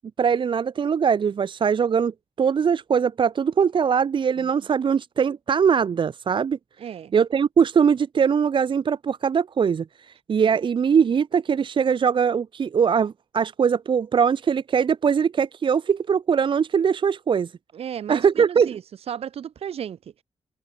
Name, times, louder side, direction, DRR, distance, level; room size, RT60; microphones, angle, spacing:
voice 1, 0.2-6.6 7.1-17.5 18.1-18.8, right 7 dB, 50° right, 0.9 m, -21 dB
voice 2, 6.8-7.1 10.4-10.6 17.7-18.8 19.1-20.0, right 9 dB, 70° right, 2.4 m, -34 dB
cardioid pair, 75°, 10 cm